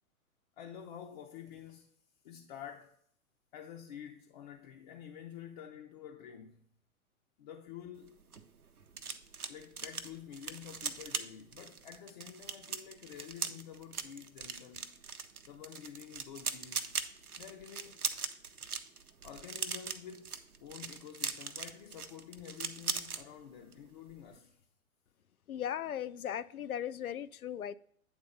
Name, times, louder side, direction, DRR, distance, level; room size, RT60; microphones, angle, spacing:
voice 1, 0.6-1.9 2.2-3.0 3.5-6.7 7.4-8.2 9.5-15.0 15.5-17.0 17.4-18.0 19.2-24.6, left 9 dB, 35° left, 0.5 m, -49 dB
sound 1, 8.0-23.2 23.6-23.8 24.1-24.4, right 5 dB, 85° right, 0.7 m, -40 dB
voice 2, 25.5-27.7, left 10 dB, 75° left, 0.5 m, -37 dB
8.9 x 3.8 x 5.1 m
figure-of-eight pair, 110°, 43 cm